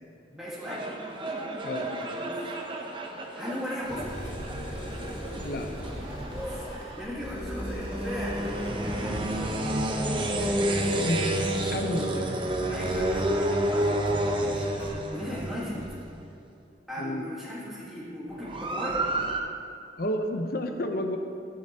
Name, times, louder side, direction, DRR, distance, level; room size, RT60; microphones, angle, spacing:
voice 1, 0.3-0.9 2.1-2.5 3.3-4.1 6.3-11.1 12.6-16.3 16.9-19.1, equal, ahead, -9 dB, 1.6 m, -38 dB
sound 1, 0.6-16.2 18.3-19.4, right 1 dB, 30° right, 0.8 m, -30 dB
voice 2, 1.6-2.0 5.4-5.7 11.0-12.3 17.0-17.3 20.0-21.2, left 1 dB, 55° left, 5 dB, 0.8 m, -31 dB
sound 2, 3.8-14.2 14.8-14.9 15.4-15.5 15.8-15.9, equal, 35° left, 1.9 m, -40 dB
15.5 x 8.5 x 2.9 m, 2.5 s
head